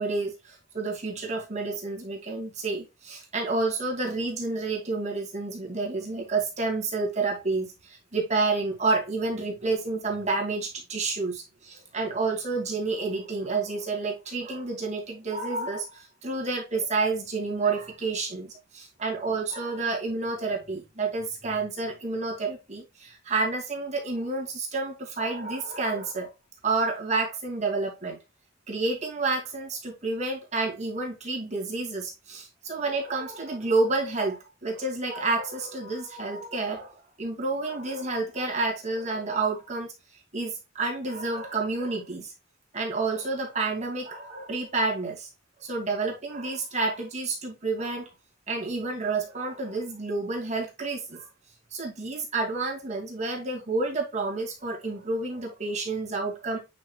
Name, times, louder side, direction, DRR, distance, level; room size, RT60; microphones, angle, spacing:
voice 1, 0.0-26.3 26.6-28.2 28.7-36.9 37.2-39.9 40.3-42.3 42.7-45.3 45.6-48.1 48.5-51.2 51.7-56.6, right 3 dB, 35° right, 2.5 m, -29 dB
8.8 x 5.0 x 2.3 m
head